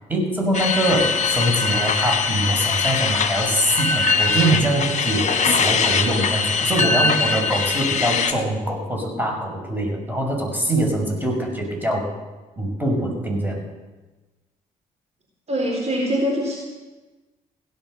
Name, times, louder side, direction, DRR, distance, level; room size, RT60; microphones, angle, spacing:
voice 1, 0.1-12.1 12.6-13.6, right 1 dB, 10° right, 1 dB, 6.6 m, -23 dB
sound 1, 0.5-8.3, left 5 dB, 40° left, 1.7 m, -22 dB
voice 2, 15.5-16.6, equal, 35° right, 0 dB, 4.2 m, -23 dB
17.0 x 11.0 x 6.8 m, 1.2 s
hypercardioid pair, 50°, 18 cm